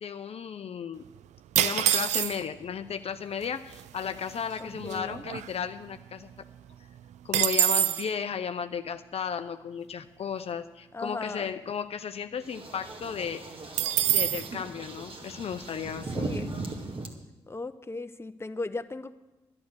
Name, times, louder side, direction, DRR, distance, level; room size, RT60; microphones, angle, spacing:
voice 1, 0.0-1.0 1.6-6.3 7.2-13.4 14.1-16.3, left 7 dB, 55° left, 9 dB, 0.6 m, -34 dB
sound 1, 1.6-2.6 3.4-3.5 3.7-4.1 4.5-6.0 6.3-6.4 6.7-8.1 13.8-14.5, right 12 dB, 70° right, 0.4 m, -26 dB
voice 2, 4.6-5.2 10.9-11.5 16.1-16.5 17.5-19.1, left 3 dB, 20° left, 11 dB, 0.8 m, -37 dB
sound 2, 12.4-17.1, right 3 dB, 45° right, 2.1 m, -38 dB
11.5 x 10.5 x 6.3 m, 1.0 s
hypercardioid pair, 40°, 13 cm